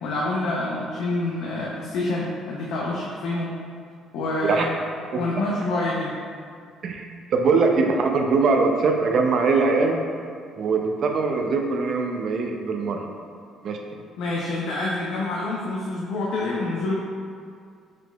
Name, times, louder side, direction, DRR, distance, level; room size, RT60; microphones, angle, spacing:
voice 1, 0.0-3.5 4.1-4.7 5.1-6.1 14.2-17.0, left 2 dB, 85° left, -4 dB, 0.5 m, -27 dB
voice 2, 6.8-10.0 10.6-13.0 13.6-13.9, right 4 dB, 50° right, 3 dB, 0.4 m, -22 dB
4.7 x 3.8 x 2.2 m, 2.2 s
cardioid pair, 140°, 0 cm